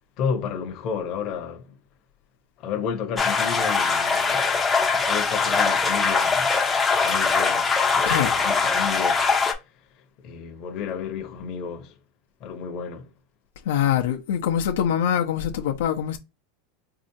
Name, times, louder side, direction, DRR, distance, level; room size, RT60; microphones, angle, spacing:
voice 1, 0.2-1.7 2.6-4.6 4.9-6.5 7.0-9.3 10.2-11.9 12.4-13.1, left 6 dB, 40° left, 0.8 m, -32 dB
sound 1, 3.2-9.5, left 4 dB, 15° left, 0.6 m, -22 dB
voice 2, 13.7-16.2, left 9 dB, 90° left, 0.7 m, -24 dB
4.2 x 2.7 x 2.7 m
supercardioid pair, 150°, 0 cm